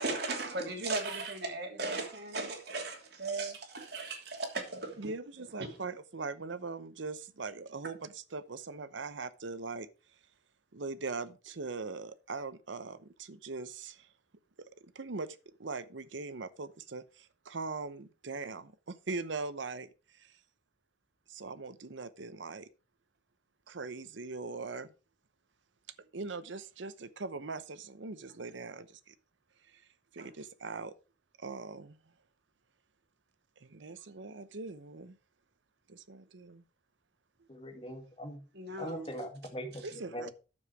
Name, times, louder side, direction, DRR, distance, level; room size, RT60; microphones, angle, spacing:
voice 1, 0.0-5.1 5.6-5.7 30.2-30.3 38.5-39.1, right 3 dB, 55° right, 2.9 m, -37 dB
voice 2, 5.0-9.9 10.7-14.1 14.9-20.4 21.3-22.7 23.7-24.9 26.0-29.1 29.6-29.9 30.1-30.9 31.4-32.0 33.6-35.2 35.9-36.6 39.8-40.3, right 3 dB, 75° right, 0.8 m, -41 dB
voice 3, 37.5-38.4 38.8-40.3, equal, 30° left, 1.8 m, -41 dB
9.7 x 7.2 x 4.8 m
head